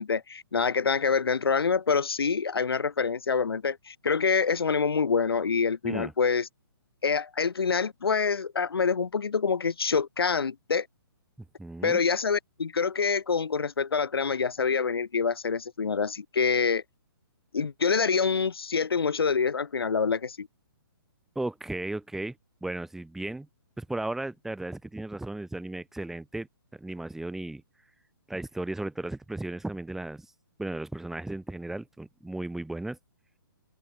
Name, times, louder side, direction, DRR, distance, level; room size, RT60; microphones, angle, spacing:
voice 1, 0.0-6.5 7.0-10.9 11.8-16.8 17.5-20.5, left 5 dB, 85° left, 1.6 m, -26 dB
voice 2, 11.6-12.0 21.3-22.4 22.6-23.5 23.8-26.5 26.7-27.6 28.3-30.3 30.6-33.0, right 2 dB, 5° right, 4.3 m, -35 dB
open air
hypercardioid pair, 150°, 12 cm